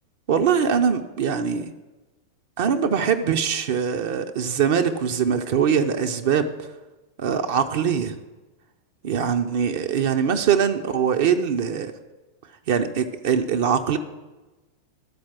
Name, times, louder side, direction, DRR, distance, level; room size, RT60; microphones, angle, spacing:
voice 1, 0.3-1.7 2.6-6.7 7.2-8.2 9.0-11.9 12.7-14.0, right 7 dB, 50° right, 6 dB, 0.6 m, -22 dB
12.0 x 4.6 x 7.3 m, 1.1 s
figure-of-eight pair, 90°, 0 cm